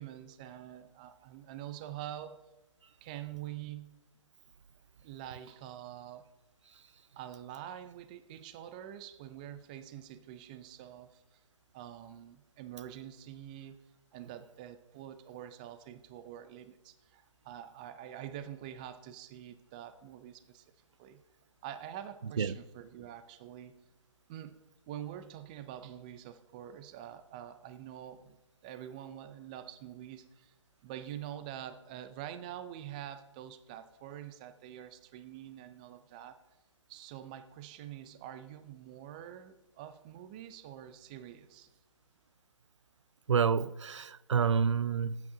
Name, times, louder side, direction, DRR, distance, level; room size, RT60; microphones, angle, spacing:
voice 1, 0.0-2.4 3.0-4.0 5.0-6.3 7.2-11.4 11.7-13.8 14.1-20.6 21.0-21.2 21.6-23.8 24.3-24.6 24.9-30.5 30.8-36.4 36.9-41.7, right 11 dB, 15° right, 0.4 m, -46 dB
voice 2, 43.3-45.2, right 6 dB, 65° right, 0.5 m, -28 dB
19.0 x 8.9 x 3.7 m
figure-of-eight pair, 150°, 16 cm